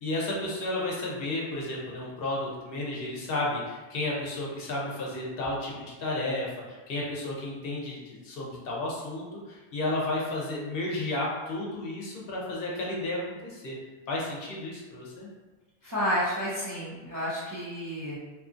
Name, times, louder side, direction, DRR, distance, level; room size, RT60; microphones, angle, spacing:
voice 1, 0.0-5.7 6.0-13.8 14.1-15.3, left 2 dB, 65° left, -3 dB, 0.8 m, -32 dB
voice 2, 15.8-18.2, equal, 30° right, -9 dB, 0.4 m, -30 dB
2.7 x 2.4 x 2.4 m, 1.2 s
omnidirectional pair, 1.1 m